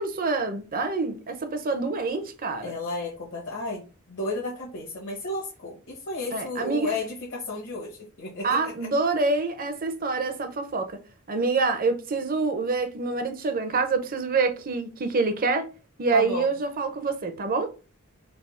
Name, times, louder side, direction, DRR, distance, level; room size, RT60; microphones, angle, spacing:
voice 1, 0.0-2.7 6.3-6.9 8.4-11.0 11.3-15.7 16.0-17.7, right 3 dB, 40° right, 0.6 m, -26 dB
voice 2, 2.6-8.7 16.1-16.5, left 2 dB, 60° left, 1.2 m, -33 dB
3.5 x 2.7 x 4.2 m
head